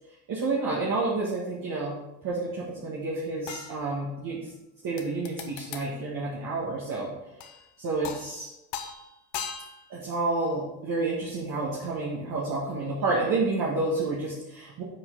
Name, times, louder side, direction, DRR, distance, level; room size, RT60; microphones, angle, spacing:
voice 1, 0.3-4.5 4.8-7.1 7.8-8.5 9.9-14.8, right 3 dB, 50° right, -5 dB, 1.7 m, -29 dB
sound 1, 3.5-4.4 5.0-6.0 7.4-7.7 8.0-8.4 8.7-10.0 12.5-12.6, left 8 dB, 65° left, 1.0 m, -39 dB
7.5 x 4.6 x 3.9 m, 0.96 s
hypercardioid pair, 70°, 46 cm